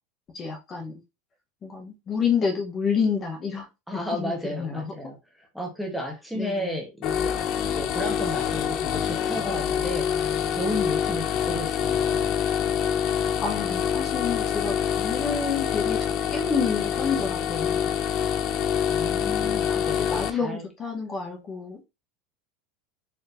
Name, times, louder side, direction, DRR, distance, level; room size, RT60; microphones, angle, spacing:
voice 1, 0.3-0.9 1.6-3.7 3.9-4.8 6.3-6.8 13.4-17.9 19.4-21.8, left 5 dB, 30° left, 1.0 m, -29 dB
voice 2, 3.9-7.3 7.7-12.3 18.9-20.6, left 1 dB, ahead, 1.0 m, -33 dB
sound 1, 7.0-20.3, left 8 dB, 45° left, 0.4 m, -26 dB
4.5 x 3.1 x 2.6 m
supercardioid pair, 135°, 0 cm